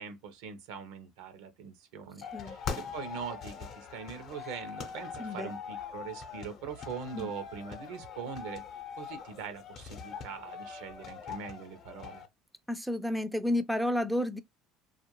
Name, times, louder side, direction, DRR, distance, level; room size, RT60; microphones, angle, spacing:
voice 1, 0.0-8.6 9.0-12.2, right 6 dB, 80° right, 0.6 m, -42 dB
sound 1, 2.2-12.3, left 6 dB, 55° left, 0.6 m, -42 dB
voice 2, 5.2-5.5 7.1-7.3 12.7-14.4, left 1 dB, ahead, 0.3 m, -31 dB
2.4 x 2.2 x 2.9 m
supercardioid pair, 85°, 0 cm